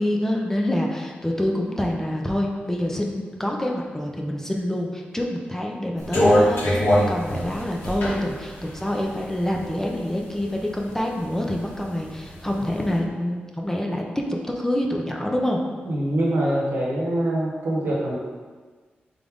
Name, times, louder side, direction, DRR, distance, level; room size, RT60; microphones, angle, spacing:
voice 1, 0.0-14.0 14.6-15.6, left 1 dB, 10° left, 0 dB, 0.6 m, -26 dB
sound 1, 6.0-10.0 10.4-11.4 11.8-12.8, equal, 85° left, 1.1 m, -22 dB
voice 2, 15.8-18.2, right 1 dB, 80° right, -4 dB, 1.0 m, -24 dB
3.8 x 3.5 x 3.5 m, 1.5 s
cardioid pair, 65°, 4 cm